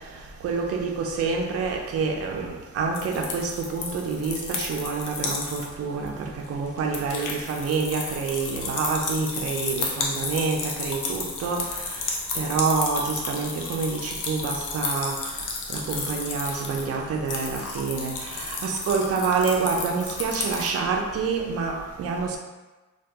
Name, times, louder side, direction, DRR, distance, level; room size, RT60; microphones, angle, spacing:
voice 1, 0.4-11.6 12.4-15.2 15.7-22.4, right 4 dB, 45° right, 1 dB, 0.4 m, -27 dB
sound 1, 2.9-5.7 6.1-6.2 6.5-20.7, left 4 dB, 65° left, 0.5 m, -32 dB
2.2 x 2.2 x 2.7 m, 1.2 s
cardioid pair, 95°, 33 cm